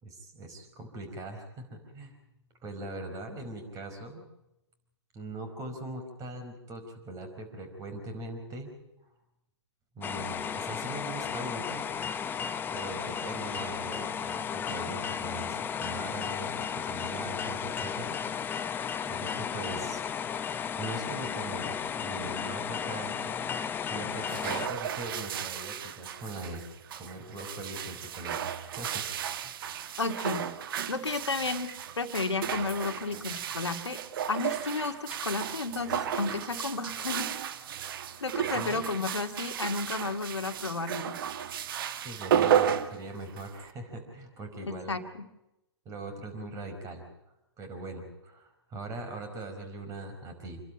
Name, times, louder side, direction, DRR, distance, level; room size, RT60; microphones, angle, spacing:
voice 1, 0.0-2.1 2.6-4.2 5.1-8.7 9.9-11.9 12.7-18.7 19.0-20.0 20.5-23.5 23.8-26.6 26.9-29.0 29.4-29.6 38.5-38.8 41.9-45.0 45.8-47.0 47.6-50.6, right 2 dB, 25° right, 7 dB, 5.1 m, -41 dB
sound 1, 10.0-24.7, left 7 dB, 15° left, 0.9 m, -34 dB
sound 2, 24.1-43.7, right 9 dB, 55° right, 1.4 m, -33 dB
voice 2, 30.0-30.5 30.9-34.0 34.3-37.3 38.2-41.1 44.6-45.3, left 3 dB, 90° left, 6 dB, 2.1 m, -32 dB
27.5 x 12.0 x 8.9 m, 0.89 s
hypercardioid pair, 125°, 14 cm